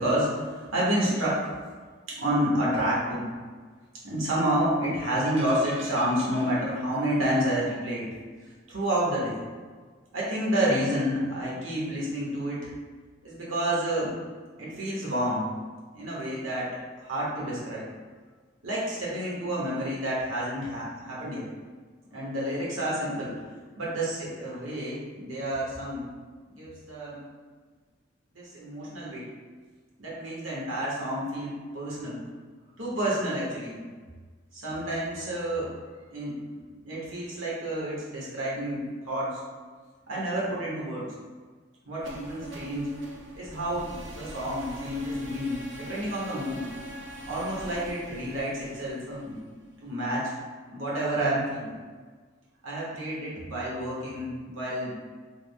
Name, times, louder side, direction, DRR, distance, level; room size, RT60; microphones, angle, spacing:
voice 1, 0.0-1.5 2.1-3.3 4.0-8.1 8.7-9.4 10.1-12.7 13.2-14.2 14.6-15.4 15.9-16.8 17.0-17.9 18.6-21.5 22.1-23.3 23.8-26.1 26.5-27.3 28.3-29.3 30.0-32.2 32.8-33.8 34.5-35.7 36.1-36.4 36.8-39.4 40.1-41.1 41.9-42.9 43.3-46.7 47.3-49.4 49.8-50.3 50.7-51.8 52.6-54.9, right 1 dB, 90° right, -6 dB, 1.1 m, -29 dB
sound 1, 5.2-7.1 7.4-7.5, equal, 30° right, 0.7 m, -44 dB
sound 2, 41.9-49.9, right 1 dB, 65° right, 0.6 m, -43 dB
3.5 x 2.1 x 3.4 m, 1.5 s
head